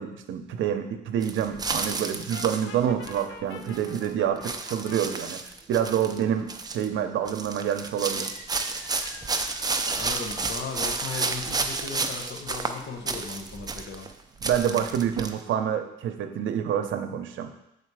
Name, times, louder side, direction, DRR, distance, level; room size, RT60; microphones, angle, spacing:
voice 1, 0.0-5.4 5.7-8.3 14.4-17.5, right 9 dB, 75° right, 7 dB, 0.7 m, -27 dB
sound 1, 1.2-3.2 3.6-4.1 4.4-6.2 6.5-6.9 7.2-14.1 14.4-15.3, right 3 dB, 20° right, 0.5 m, -31 dB
Brass instrument, 2.3-5.0, left 6 dB, 80° left, 0.6 m, -45 dB
sound 2, 8.2-13.2, equal, 25° left, 1.5 m, -48 dB
voice 2, 9.9-14.1, left 4 dB, 60° left, 2 dB, 1.0 m, -37 dB
6.7 x 4.1 x 4.8 m, 0.83 s
cardioid pair, 90°, 20 cm